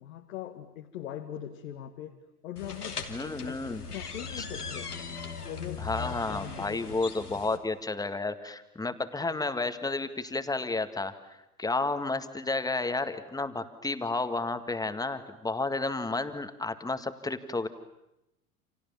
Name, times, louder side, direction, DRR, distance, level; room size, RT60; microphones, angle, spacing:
voice 1, 0.0-2.2 2.4-3.5 3.9-5.0 5.4-6.9 7.3-7.4, left 11 dB, 60° left, 4 dB, 2.1 m, -41 dB
sound 1, 2.6-7.6, left 5 dB, 80° left, 3.0 m, -39 dB
voice 2, 3.1-3.8 5.8-11.1 11.6-17.7, left 3 dB, 10° left, 10 dB, 1.9 m, -31 dB
29.0 x 28.5 x 7.1 m, 0.88 s
figure-of-eight pair, 80°, 45 cm